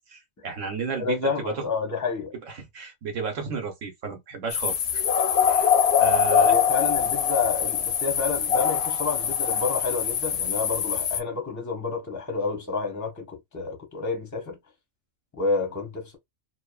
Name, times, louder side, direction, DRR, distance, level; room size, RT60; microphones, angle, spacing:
voice 1, 0.1-1.7 2.6-5.0 5.5-5.7 6.0-6.5, right 5 dB, 80° right, 1.2 m, -33 dB
voice 2, 1.0-2.3 6.4-14.6 15.3-16.2, left 4 dB, 20° left, 0.7 m, -29 dB
sound 1, 4.5-11.2, left 8 dB, 65° left, 0.8 m, -23 dB
3.0 x 2.1 x 2.3 m
omnidirectional pair, 1.3 m